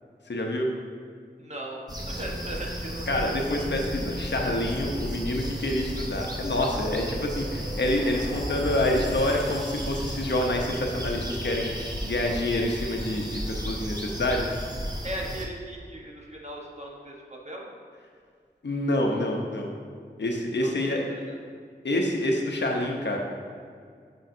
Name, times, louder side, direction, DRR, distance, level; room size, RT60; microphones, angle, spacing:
voice 1, 0.3-0.7 3.1-14.5 18.6-19.7 20.2-21.0 21.8-23.2, left 1 dB, 85° left, 0 dB, 0.9 m, -27 dB
voice 2, 1.4-1.8 2.1-3.3 15.0-17.7 20.6-21.4, right 1 dB, 40° right, -2 dB, 1.3 m, -38 dB
sound 1, 1.9-15.5, equal, 20° right, 0.9 m, -34 dB
sound 2, 6.2-10.6, equal, 35° left, 1.4 m, -40 dB
10.0 x 5.5 x 2.7 m, 2.1 s
wide cardioid pair, 55°, 18 cm